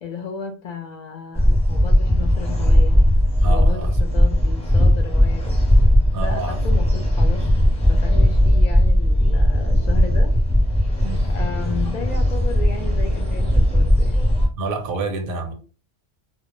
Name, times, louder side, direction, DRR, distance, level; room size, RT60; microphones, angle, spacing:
voice 1, 0.0-3.0 3.4-5.6 6.1-10.3 11.3-14.3, left 5 dB, 55° left, 0.5 m, -34 dB
sound 1, 1.3-14.5, equal, 10° left, 0.5 m, -17 dB
voice 2, 3.4-3.9 6.1-7.0 9.5-9.8 11.0-11.3 14.6-15.5, right 2 dB, 65° right, 0.7 m, -29 dB
2.1 x 2.0 x 2.9 m
omnidirectional pair, 1.1 m